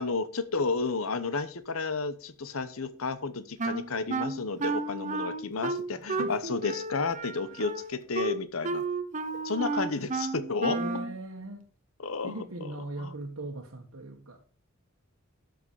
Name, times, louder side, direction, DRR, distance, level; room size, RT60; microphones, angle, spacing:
voice 1, 0.0-8.8 9.4-10.8 12.0-13.1, left 4 dB, 85° left, 1.0 m, -32 dB
Wind instrument woodwind instrument, 3.6-11.1, right 3 dB, 35° right, 0.8 m, -32 dB
voice 2, 5.9-6.7 7.6-7.7 9.3-9.4 9.9-10.1 10.7-11.7 12.2-14.5, right 2 dB, 85° right, 1.4 m, -39 dB
12.5 x 5.9 x 5.6 m
head